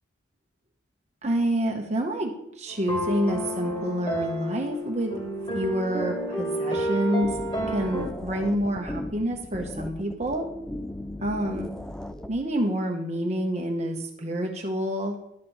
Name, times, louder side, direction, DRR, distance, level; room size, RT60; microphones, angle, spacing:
voice 1, 1.2-2.3 2.6-5.1 5.5-7.3 7.7-10.5 11.2-11.7 12.3-15.2, right 1 dB, 35° right, 2 dB, 0.9 m, -28 dB
sound 1, 2.7-8.1, equal, 25° left, 1.7 m, -30 dB
sound 2, 7.2-12.3, left 1 dB, 5° left, 0.3 m, -37 dB
11.5 x 4.2 x 7.1 m, 0.82 s
head